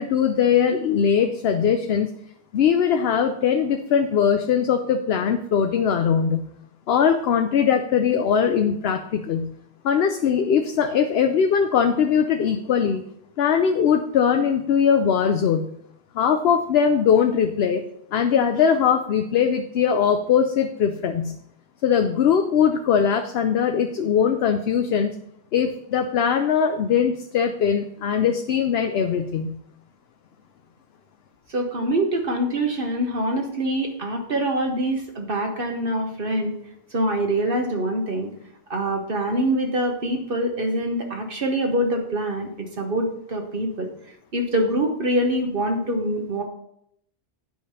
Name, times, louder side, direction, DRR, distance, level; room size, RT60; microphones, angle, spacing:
voice 1, 0.0-2.1 2.5-6.5 6.9-9.5 9.8-13.0 13.4-15.7 16.1-17.8 18.1-21.4 21.8-25.1 25.5-29.6, left 7 dB, 70° left, 6 dB, 0.9 m, -21 dB
voice 2, 31.5-36.5 36.9-38.3 38.7-43.9 44.3-46.4, right 1 dB, 55° right, 2 dB, 1.2 m, -24 dB
9.2 x 5.1 x 5.5 m, 0.73 s
omnidirectional pair, 1.1 m